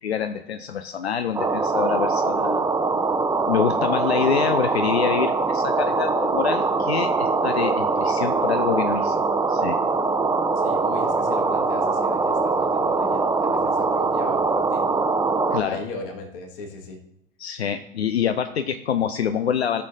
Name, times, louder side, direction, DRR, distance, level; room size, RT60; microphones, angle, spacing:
voice 1, 0.0-2.7 3.5-9.2 9.5-9.8 15.5-15.8 17.4-19.8, left 8 dB, 85° left, 9 dB, 0.5 m, -26 dB
sound 1, 1.3-15.6, right 4 dB, 10° right, 0.7 m, -22 dB
voice 2, 10.6-14.9 15.6-17.0, left 3 dB, 60° left, 2 dB, 1.9 m, -38 dB
15.0 x 6.5 x 2.7 m, 0.77 s
figure-of-eight pair, 85°, 31 cm